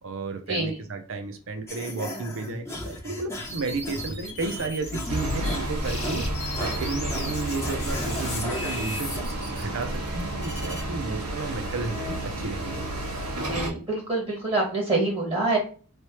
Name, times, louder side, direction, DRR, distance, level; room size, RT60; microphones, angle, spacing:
voice 1, 0.0-12.9, right 3 dB, 60° right, 6 dB, 0.6 m, -33 dB
sound 1, 1.7-9.2, left 1 dB, 10° left, 0.6 m, -37 dB
sound 2, 3.4-5.6 5.8-10.8, left 2 dB, 30° left, 0.9 m, -38 dB
sound 3, 5.1-13.7, right 1 dB, 90° right, 1.4 m, -31 dB
voice 2, 13.5-15.6, right 2 dB, 25° right, -3 dB, 1.5 m, -26 dB
3.3 x 2.9 x 3.0 m, 0.38 s
head